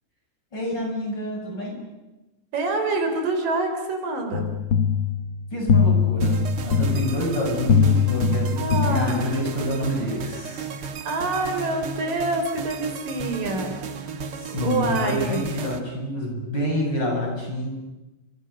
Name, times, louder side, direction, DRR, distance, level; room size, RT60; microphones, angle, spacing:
voice 1, 0.5-1.8 5.5-10.7 14.4-17.7, left 1 dB, 30° left, 0 dB, 8.6 m, -28 dB
voice 2, 2.5-4.5 8.6-9.4 11.1-13.8 14.5-15.5, right 2 dB, 90° right, 4 dB, 6.1 m, -26 dB
sound 1, 4.3-9.6, left 5 dB, 60° left, 1.3 m, -22 dB
sound 2, 6.2-15.8, right 5 dB, 50° right, 2.1 m, -34 dB
30.0 x 26.0 x 6.8 m, 1.0 s
omnidirectional pair, 3.7 m